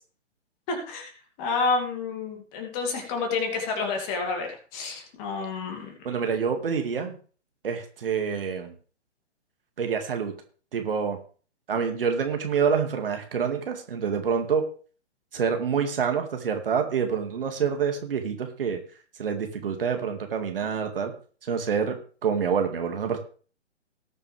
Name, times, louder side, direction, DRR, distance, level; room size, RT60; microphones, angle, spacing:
voice 1, 0.7-1.1 1.4-6.0, left 4 dB, 25° left, 3 dB, 2.7 m, -29 dB
voice 2, 6.0-7.2 7.6-8.7 9.8-10.3 10.7-11.2 11.7-14.7 15.3-18.8 19.2-21.1 21.5-23.2, right 6 dB, 50° right, 5 dB, 2.1 m, -27 dB
19.0 x 6.8 x 3.4 m, 0.39 s
figure-of-eight pair, 130°, 36 cm